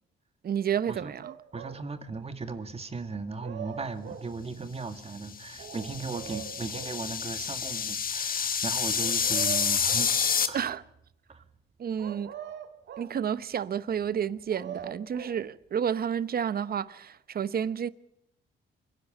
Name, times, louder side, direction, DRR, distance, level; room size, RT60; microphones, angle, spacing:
voice 1, 0.4-1.3 10.5-10.8 11.8-12.3 13.0-17.9, right 8 dB, 50° right, 0.9 m, -30 dB
sound 1, 1.2-1.9 3.1-4.3 5.6-7.0 9.0-10.2 12.0-13.2 14.2-15.4 16.7-16.8, right 9 dB, 65° right, 1.5 m, -42 dB
voice 2, 1.5-10.2 10.5-10.7 11.3-11.4, right 4 dB, 30° right, 2.0 m, -37 dB
sound 2, 5.3-10.5, left 7 dB, 45° left, 1.5 m, -29 dB
27.5 x 10.5 x 9.1 m
cardioid pair, 90°, 20 cm